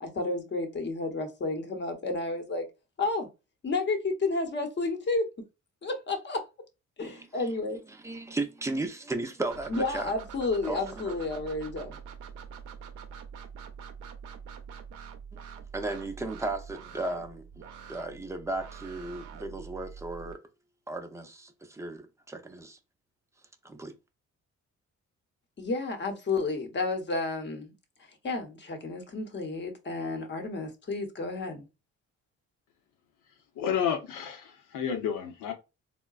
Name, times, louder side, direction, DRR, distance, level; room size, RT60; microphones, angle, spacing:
voice 1, 0.0-2.6 3.0-3.3 3.6-5.3 5.8-6.4 7.0-7.8 9.7-12.0 25.6-27.7 28.2-31.7, left 3 dB, 35° left, 0.9 m, -31 dB
voice 2, 7.0-7.5 7.9-10.1 10.6-11.2 15.3-17.5 17.9-20.4 20.9-22.8 23.6-23.9, right 2 dB, 10° right, 0.5 m, -35 dB
sound 1, 9.5-20.3, right 7 dB, 90° right, 0.6 m, -45 dB
voice 3, 33.5-35.5, left 8 dB, 85° left, 0.8 m, -31 dB
3.7 x 2.2 x 2.3 m
cardioid pair, 90°, 30 cm